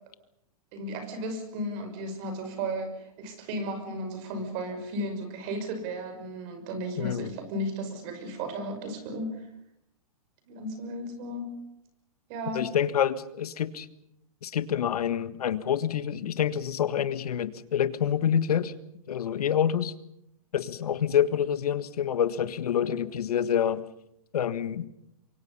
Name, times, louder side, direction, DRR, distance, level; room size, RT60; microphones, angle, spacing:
voice 1, 0.7-9.5 10.5-11.5 12.3-12.7 22.9-23.0, right 1 dB, 40° right, 7 dB, 5.9 m, -34 dB
voice 2, 7.0-7.3 12.5-13.9 14.4-18.7 19.1-19.9 20.5-23.8 24.3-24.9, left 9 dB, 80° left, 14 dB, 1.6 m, -27 dB
27.5 x 23.5 x 5.6 m, 0.79 s
hypercardioid pair, 140°, 19 cm